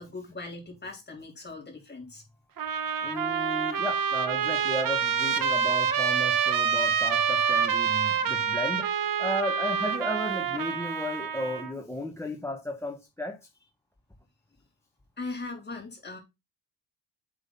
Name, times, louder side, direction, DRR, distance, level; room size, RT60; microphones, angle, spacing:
voice 1, 0.0-2.2 15.2-16.2, left 3 dB, 20° left, 3.6 m, -39 dB
Trumpet, 2.6-11.7, right 7 dB, 45° right, 1.1 m, -27 dB
voice 2, 3.0-13.4, left 1 dB, 5° left, 0.9 m, -34 dB
7.9 x 3.8 x 5.4 m
cardioid pair, 120°, 45 cm